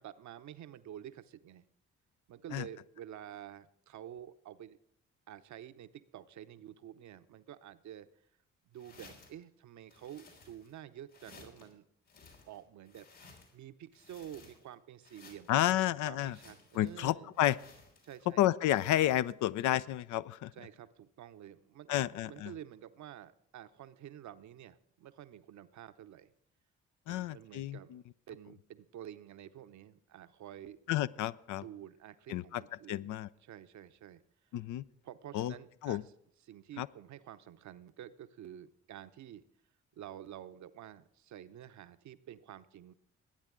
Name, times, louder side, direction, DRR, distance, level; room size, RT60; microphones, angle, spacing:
voice 1, 0.0-1.6 2.3-4.8 5.3-8.1 8.7-11.9 12.5-15.8 16.0-17.3 18.0-18.6 20.5-26.3 27.1-30.8 31.5-33.1 33.4-34.2 35.0-36.1 36.4-39.4 40.0-42.9, right 11 dB, 55° right, 12 dB, 0.8 m, -50 dB
sound 1, 8.7-9.4 9.9-10.8 11.1-11.7 12.1-13.6 13.9-14.7 15.0-15.7 16.2-17.0 17.3-18.3 18.7-19.3, left 4 dB, 80° left, 3.4 m, -58 dB
voice 2, 15.5-16.4 16.7-17.6 18.4-20.5 21.9-22.5 27.1-28.0 30.9-31.6 32.3-32.6 32.9-33.3 34.5-34.8 35.3-35.5 35.8-36.0 36.8-36.9, left 13 dB, 60° left, 16 dB, 0.5 m, -31 dB
20.0 x 9.0 x 3.7 m, 0.71 s
hypercardioid pair, 40°, 35 cm